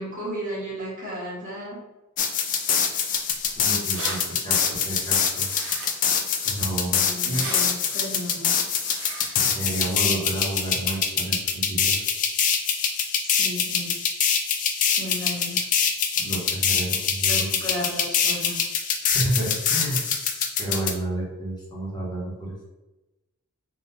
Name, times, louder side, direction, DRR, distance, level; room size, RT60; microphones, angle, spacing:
voice 1, 0.0-1.8 6.9-8.5 13.2-14.0 14.9-15.6 17.2-18.6, equal, 35° right, -8 dB, 1.5 m, -34 dB
sound 1, 2.2-20.9, left 7 dB, 35° left, 0.3 m, -24 dB
sound 2, 3.4-3.5 3.7-4.2 5.5-6.1 7.2-7.6 8.8-9.3, right 3 dB, 60° right, 0.7 m, -34 dB
voice 2, 3.6-5.5 6.4-7.5 9.5-12.1 16.2-17.5 19.0-20.0 20.6-22.5, right 1 dB, 20° left, -6 dB, 1.1 m, -30 dB
3.7 x 2.4 x 2.7 m, 1.0 s
head